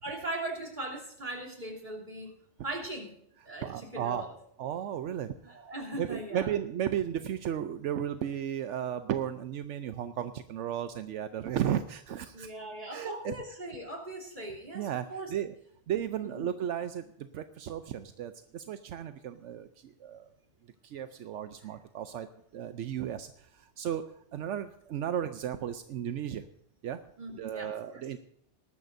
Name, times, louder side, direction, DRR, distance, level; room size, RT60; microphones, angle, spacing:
voice 1, 0.0-2.3 2.6-3.2 3.4-4.3 5.4-6.5 12.3-15.4 16.2-16.5 21.6-21.7 27.2-28.0, right 1 dB, 40° right, 2 dB, 3.3 m, -39 dB
voice 2, 3.6-4.2 4.6-5.6 5.9-12.5 12.9-13.3 14.7-15.5 15.9-17.1 17.3-20.3 20.8-22.3 22.5-26.4 26.8-27.0 27.3-28.2, right 9 dB, 80° right, 10 dB, 1.0 m, -34 dB
19.5 x 13.5 x 2.6 m, 0.72 s
omnidirectional pair, 1.2 m